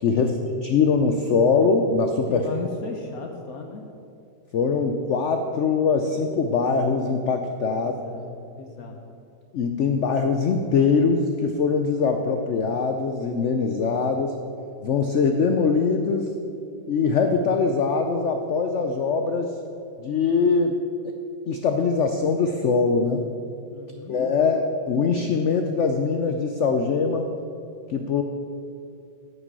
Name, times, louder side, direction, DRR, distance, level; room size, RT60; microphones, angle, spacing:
voice 1, 0.0-0.3 0.6-2.5 4.5-7.9 9.5-14.4 14.8-16.3 16.9-19.6 20.0-21.1 21.5-23.3 24.1-27.3 27.9-28.2, left 5 dB, 80° left, 6 dB, 0.6 m, -22 dB
voice 2, 2.3-3.8 7.7-9.0 23.4-24.2, left 5 dB, 60° left, 3 dB, 1.1 m, -37 dB
9.3 x 6.3 x 7.4 m, 2.5 s
omnidirectional pair, 1.9 m